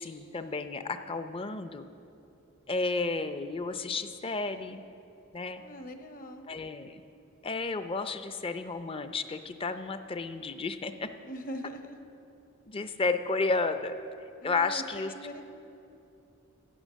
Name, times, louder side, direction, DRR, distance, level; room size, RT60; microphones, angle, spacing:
voice 1, 0.0-1.9 2.7-4.8 5.3-5.6 6.5-7.0 7.4-11.1 12.7-13.9 14.4-15.4, left 3 dB, 25° left, 9 dB, 0.5 m, -32 dB
voice 2, 5.6-6.5 11.2-12.0 14.4-15.4, equal, 40° left, 7 dB, 0.9 m, -42 dB
15.5 x 8.3 x 6.3 m, 2.8 s
head